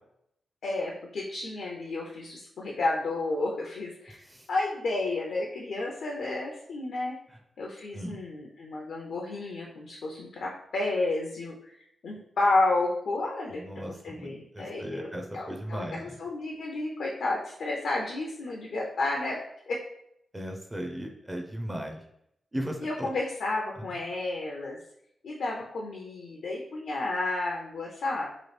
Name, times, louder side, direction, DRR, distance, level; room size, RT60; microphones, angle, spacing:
voice 1, 0.6-4.2 4.5-7.1 7.6-11.7 12.0-19.4 19.7-19.8 22.8-24.8 25.2-28.3, left 2 dB, 75° left, -2 dB, 0.5 m, -31 dB
voice 2, 13.5-16.2 20.3-22.0 22.5-23.1, equal, 15° right, 3 dB, 0.4 m, -37 dB
3.0 x 2.4 x 3.2 m, 0.73 s
wide cardioid pair, 100°, 0 cm